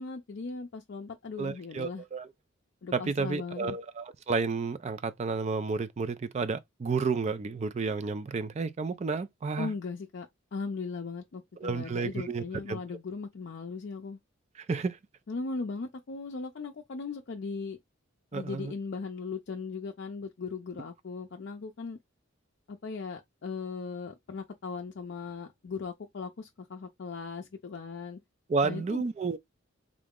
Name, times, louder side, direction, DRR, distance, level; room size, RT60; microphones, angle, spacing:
voice 1, 0.0-2.0 2.8-3.8 9.6-14.2 15.3-17.8 18.3-22.0 22.7-28.2 28.6-29.0, left 4 dB, 60° left, 0.4 m, -38 dB
voice 2, 1.4-2.3 2.9-9.7 11.6-12.8 14.6-15.0 18.3-18.7 28.5-29.4, right 4 dB, 35° right, 0.3 m, -31 dB
3.6 x 2.0 x 3.5 m
head